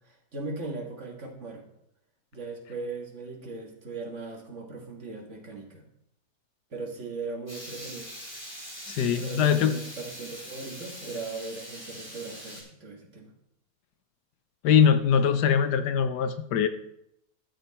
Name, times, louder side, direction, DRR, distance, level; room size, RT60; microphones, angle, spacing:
voice 1, 0.0-1.6 2.3-5.8 6.7-8.1 9.2-13.3, right 3 dB, 45° right, 0 dB, 2.1 m, -38 dB
Water tap faucet / Liquid, 7.5-12.6, equal, 10° left, 4.5 m, -42 dB
voice 2, 8.9-9.8 14.6-16.7, left 7 dB, 80° left, 10 dB, 1.3 m, -22 dB
13.0 x 7.1 x 4.3 m, 0.79 s
omnidirectional pair, 1.8 m